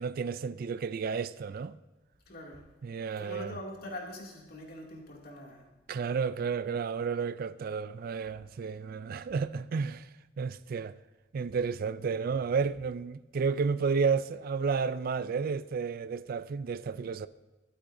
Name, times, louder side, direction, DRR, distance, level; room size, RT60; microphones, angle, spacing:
voice 1, 0.0-1.7 2.8-3.5 5.9-10.1 10.4-10.9 11.3-17.3, right 5 dB, 55° right, 0.4 m, -31 dB
voice 2, 2.3-2.7 3.2-5.7, left 1 dB, 55° left, 2.4 m, -43 dB
22.0 x 8.4 x 2.6 m
head